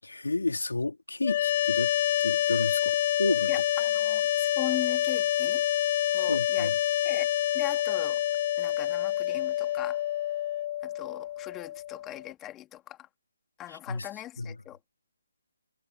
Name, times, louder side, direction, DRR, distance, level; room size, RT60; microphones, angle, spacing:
voice 1, 0.0-1.9 2.2-3.5 6.1-6.8 13.7-14.1 14.4-14.6, left 2 dB, 80° left, 3.1 m, -31 dB
sound 1, 1.2-12.3, left 12 dB, 35° left, 2.3 m, -27 dB
voice 2, 3.5-5.6 6.1-6.7 7.0-7.3 7.5-8.2 8.6-10.0 10.8-13.0 13.6-14.8, left 14 dB, 15° left, 2.7 m, -39 dB
figure-of-eight pair, 145°, 0 cm